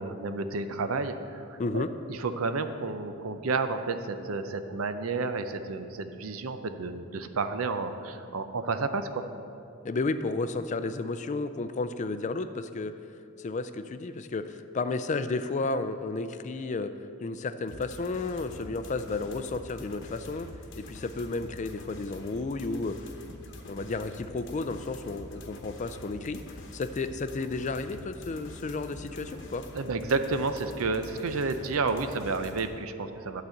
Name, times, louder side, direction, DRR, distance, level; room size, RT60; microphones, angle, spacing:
voice 1, 0.0-1.8 2.1-9.2 29.7-33.4, right 3 dB, 90° right, 9 dB, 0.6 m, -31 dB
voice 2, 1.6-1.9 9.8-12.9 13.4-16.9 17.2-20.5 20.8-23.0 23.7-26.4 26.7-29.7, left 3 dB, 35° left, 10 dB, 0.4 m, -32 dB
sound 1, 17.7-32.7, left 1 dB, 60° left, 1.0 m, -46 dB
11.5 x 4.1 x 7.8 m, 2.6 s
head